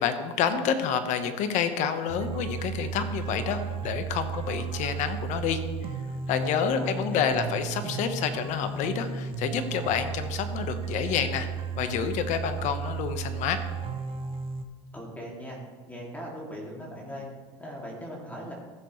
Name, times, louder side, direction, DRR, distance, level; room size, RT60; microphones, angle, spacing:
voice 1, 0.0-5.6 6.3-11.5 11.8-13.6, left 7 dB, 55° left, 9 dB, 1.2 m, -28 dB
sound 1, 2.1-14.6, right 6 dB, 35° right, 1.1 m, -34 dB
voice 2, 6.7-7.5 14.9-15.6 15.9-17.3 17.6-18.5, equal, 10° left, -3 dB, 2.6 m, -39 dB
15.5 x 7.0 x 3.2 m, 1.4 s
supercardioid pair, 105°, 15 cm